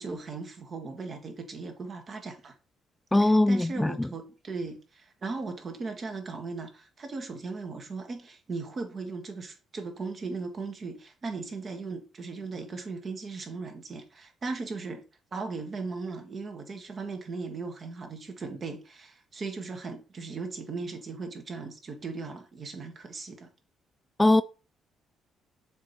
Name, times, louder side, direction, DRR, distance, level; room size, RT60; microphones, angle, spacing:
voice 1, 0.0-2.5 3.2-15.0 15.3-23.5, right 4 dB, 45° right, 1.7 m, -37 dB
voice 2, 3.1-4.1 24.2-24.4, left 2 dB, 15° left, 0.4 m, -21 dB
7.3 x 3.2 x 5.1 m
hypercardioid pair, 55°, 0 cm